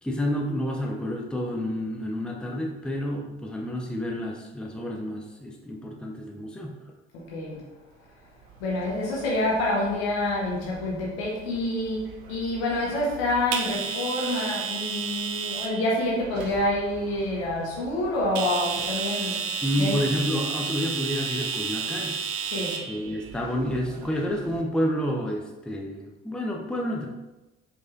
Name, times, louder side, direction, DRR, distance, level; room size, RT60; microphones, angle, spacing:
voice 1, 0.0-6.8 19.6-22.2 22.8-27.1, equal, 5° left, 0 dB, 0.7 m, -29 dB
voice 2, 7.1-7.6 8.6-19.4 19.8-20.0 22.4-22.8, left 1 dB, 70° left, -4 dB, 1.4 m, -27 dB
sound 1, 8.5-24.6, right 6 dB, 70° right, 0.5 m, -34 dB
4.9 x 4.2 x 2.5 m, 1.1 s
figure-of-eight pair, 45°, 33 cm